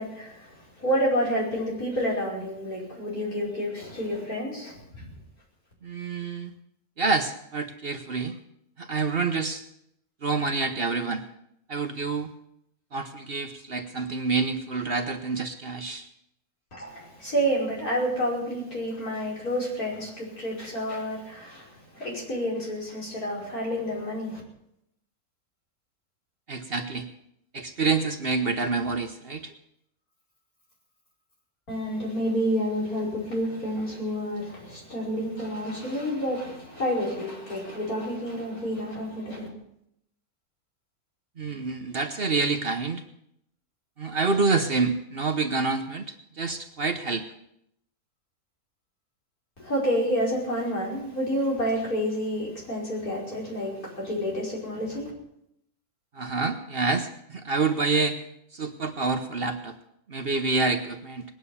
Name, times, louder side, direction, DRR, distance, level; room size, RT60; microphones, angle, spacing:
voice 1, 0.0-5.1 16.7-24.4 31.7-39.5 49.6-55.1, equal, 75° left, -4 dB, 5.9 m, -29 dB
voice 2, 5.8-6.5 7.0-8.3 8.8-9.6 10.2-11.2 11.7-12.3 12.9-16.1 26.5-27.1 27.5-29.5 41.4-43.0 44.0-47.2 56.1-58.2 58.5-59.8 60.1-61.2, right 4 dB, 45° right, 7 dB, 1.1 m, -27 dB
20.0 x 9.3 x 7.0 m, 0.77 s
omnidirectional pair, 1.6 m